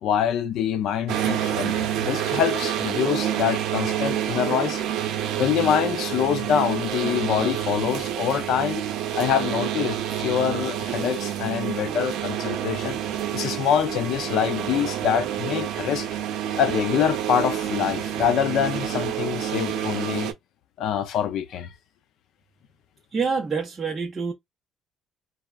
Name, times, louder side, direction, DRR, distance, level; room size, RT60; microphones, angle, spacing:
voice 1, 0.0-5.1 5.4-8.8 9.1-13.0 13.3-16.1 16.6-20.3 20.8-21.7, left 9 dB, 55° left, 0.4 m, -25 dB
sound 1, 1.1-20.3, right 10 dB, 70° right, 0.6 m, -28 dB
voice 2, 23.1-24.3, right 5 dB, 15° right, 0.5 m, -26 dB
3.3 x 2.0 x 2.3 m
cardioid pair, 175°, 0 cm